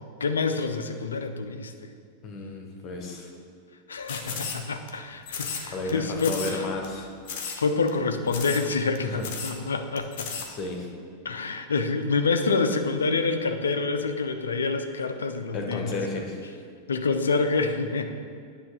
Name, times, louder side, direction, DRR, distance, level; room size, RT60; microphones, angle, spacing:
voice 1, 0.0-1.9 3.9-6.7 7.3-10.3 11.2-16.0 16.9-18.1, left 4 dB, 70° left, 7 dB, 0.5 m, -27 dB
voice 2, 2.2-3.3 4.3-4.7 5.7-7.1 9.0-9.3 10.5-10.9 15.5-16.4, left 3 dB, 30° left, 2 dB, 1.2 m, -33 dB
sound 1, 4.1-4.9 5.3-5.9 6.2-6.6 6.8-6.9 7.3-7.6 7.9-8.0 8.3-8.7 8.9-9.0 9.2-9.6 10.0-10.5, left 6 dB, 50° left, 0.8 m, -34 dB
9.3 x 3.1 x 6.2 m, 2.2 s
figure-of-eight pair, 90°, 0 cm